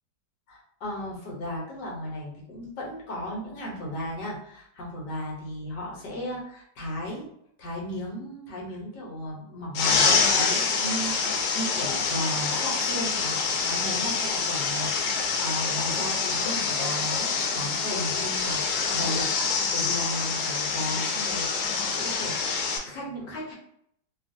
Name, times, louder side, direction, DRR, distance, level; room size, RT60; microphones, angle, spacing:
voice 1, 0.5-7.3 7.6-19.3 19.7-22.3 22.8-23.5, equal, 70° left, -3 dB, 1.5 m, -35 dB
sound 1, 9.7-22.8, left 5 dB, 90° left, 1.3 m, -26 dB
3.3 x 2.4 x 2.5 m, 0.71 s
omnidirectional pair, 2.0 m